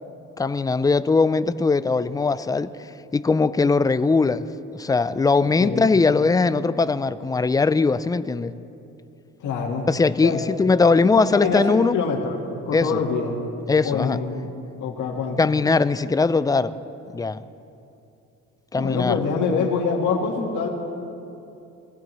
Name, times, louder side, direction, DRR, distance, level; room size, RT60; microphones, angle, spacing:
voice 1, 0.4-2.7 3.1-4.5 4.7-8.5 9.9-12.0 12.7-13.0 13.7-14.2 15.4-16.7 17.1-17.4 18.7-19.2 19.5-19.7, left 4 dB, 15° left, 0.4 m, -20 dB
voice 2, 5.4-5.9 9.4-9.9 10.2-10.4 11.3-12.4 12.7-13.4 13.8-14.5 14.8-15.4 18.8-20.7, left 5 dB, 80° left, 1.7 m, -25 dB
20.0 x 15.5 x 3.1 m
cardioid pair, 90°, 30 cm